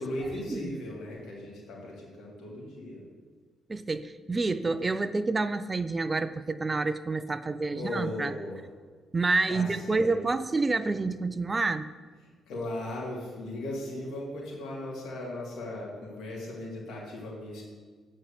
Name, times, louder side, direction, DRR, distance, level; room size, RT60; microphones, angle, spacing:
voice 1, 0.0-3.0 7.6-8.6 9.5-10.2 12.2-17.6, left 1 dB, 75° left, -3 dB, 3.1 m, -37 dB
voice 2, 3.7-8.3 9.1-11.9, right 3 dB, 25° right, 13 dB, 0.5 m, -28 dB
8.6 x 5.3 x 7.5 m, 1.5 s
cardioid pair, 90°, 0 cm